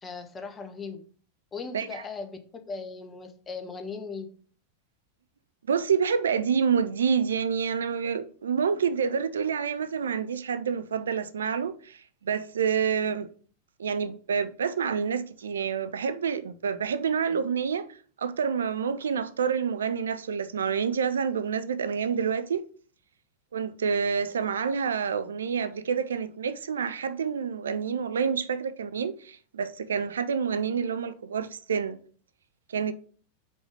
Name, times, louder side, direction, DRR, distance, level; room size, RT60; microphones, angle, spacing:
voice 1, 0.0-1.0 1.5-4.3, left 4 dB, 20° left, 1.1 m, -38 dB
voice 2, 5.7-13.3 13.8-17.9 18.2-22.7 23.5-32.0 32.7-32.9, right 6 dB, 65° right, 0.5 m, -28 dB
5.6 x 5.2 x 5.1 m
figure-of-eight pair, 90°, 0 cm